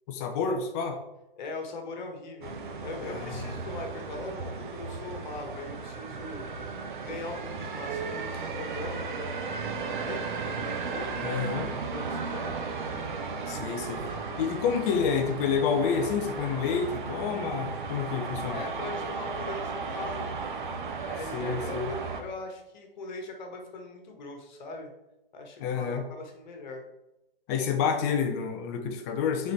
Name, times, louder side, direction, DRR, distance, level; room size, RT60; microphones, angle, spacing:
voice 1, 0.1-1.0 3.1-3.5 11.2-11.8 13.5-14.0 14.4-18.6 21.3-21.9 25.6-26.0 27.5-29.5, left 6 dB, 15° left, 6 dB, 0.4 m, -29 dB
voice 2, 1.4-2.5 2.8-6.7 7.0-11.2 11.9-12.7 18.5-20.3 21.0-24.9 25.3-26.9, left 3 dB, 50° left, 2 dB, 1.5 m, -40 dB
sound 1, 2.4-22.2, right 4 dB, 55° right, 1.1 m, -35 dB
9.1 x 4.2 x 3.3 m, 0.94 s
hypercardioid pair, 135°, 29 cm